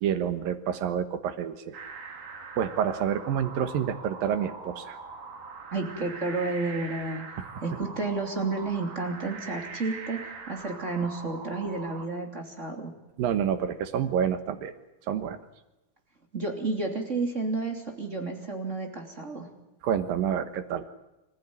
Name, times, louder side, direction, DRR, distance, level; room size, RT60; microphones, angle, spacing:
voice 1, 0.0-1.8 2.6-5.0 13.2-14.7 15.1-15.4 19.8-20.8, right 8 dB, 75° right, 10 dB, 3.0 m, -28 dB
sound 1, 1.7-12.1, right 4 dB, 60° right, 4.2 m, -42 dB
voice 2, 5.7-7.4 7.6-10.2 10.5-12.9 16.3-19.5, right 3 dB, 20° right, 3 dB, 2.9 m, -31 dB
26.0 x 15.5 x 9.7 m, 0.97 s
omnidirectional pair, 4.1 m